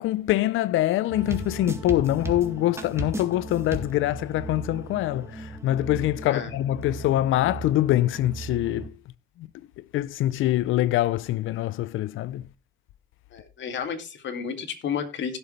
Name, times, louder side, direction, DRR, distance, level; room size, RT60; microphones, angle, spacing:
voice 1, 0.0-9.0 9.4-9.5 9.8-12.5, left 14 dB, 85° left, 0.6 m, -24 dB
sound 1, 1.1-8.9, right 2 dB, 15° right, 2.0 m, -36 dB
voice 2, 13.3-15.4, left 7 dB, 65° left, 2.4 m, -32 dB
16.5 x 7.1 x 3.2 m
cardioid pair, 90°, 20 cm